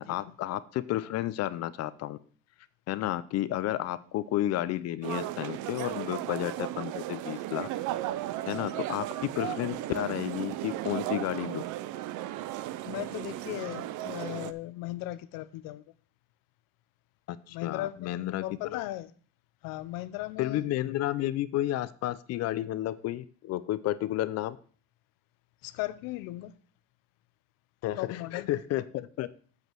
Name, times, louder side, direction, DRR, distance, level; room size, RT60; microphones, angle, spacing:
voice 1, 0.0-2.2 2.9-7.7 8.5-11.6 17.3-18.4 18.7-18.8 20.4-24.6 27.8-29.3, left 14 dB, 50° left, 0.5 m, -32 dB
sound 1, 5.0-14.5, right 14 dB, 65° right, 0.6 m, -35 dB
voice 2, 9.4-9.8 12.8-15.8 17.5-19.1 19.6-20.6 25.6-26.5 28.0-28.5, left 16 dB, 80° left, 0.8 m, -37 dB
8.1 x 5.0 x 7.4 m
cardioid pair, 165°, 33 cm